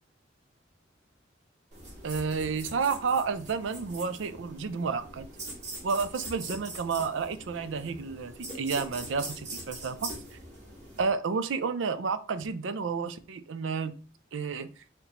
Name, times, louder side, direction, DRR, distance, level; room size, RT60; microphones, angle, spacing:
sound 1, 1.7-11.1, right 2 dB, 40° right, 1.8 m, -42 dB
voice 1, 2.0-5.3 5.8-10.1 11.0-13.9 14.3-14.7, right 5 dB, 85° right, 12 dB, 0.5 m, -31 dB
4.3 x 2.7 x 4.1 m, 0.37 s
head